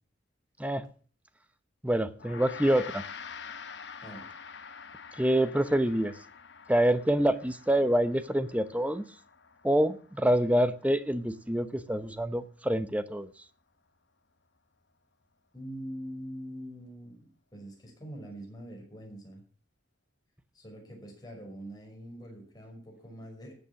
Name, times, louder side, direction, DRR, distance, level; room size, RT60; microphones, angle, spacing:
voice 1, 1.8-3.0 5.2-6.2 6.7-9.1 9.6-13.3, right 1 dB, 10° right, 0.9 m, -26 dB
Gong, 2.2-11.7, left 6 dB, 70° left, 1.1 m, -47 dB
voice 2, 15.5-19.4 20.5-23.5, equal, 20° left, 5.8 m, -44 dB
14.0 x 8.5 x 7.1 m
head